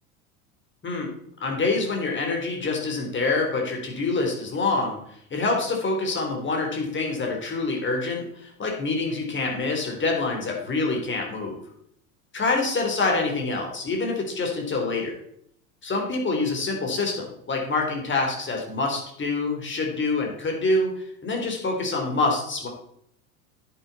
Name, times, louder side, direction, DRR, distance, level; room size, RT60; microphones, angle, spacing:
voice 1, 1.4-5.0 5.3-11.6 12.3-15.2 15.8-22.7, left 3 dB, 25° left, 1 dB, 3.6 m, -26 dB
10.0 x 9.5 x 4.2 m, 0.70 s
hypercardioid pair, 85°, 43 cm